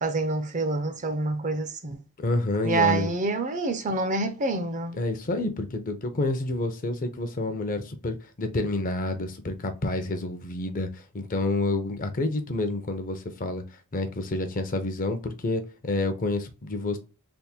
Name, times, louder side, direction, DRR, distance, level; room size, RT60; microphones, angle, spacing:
voice 1, 0.0-2.0 2.6-5.0, right 3 dB, 35° right, 0.5 m, -27 dB
voice 2, 2.2-3.1 4.9-13.6 13.9-17.0, left 2 dB, 40° left, 0.6 m, -28 dB
3.5 x 2.0 x 4.3 m
head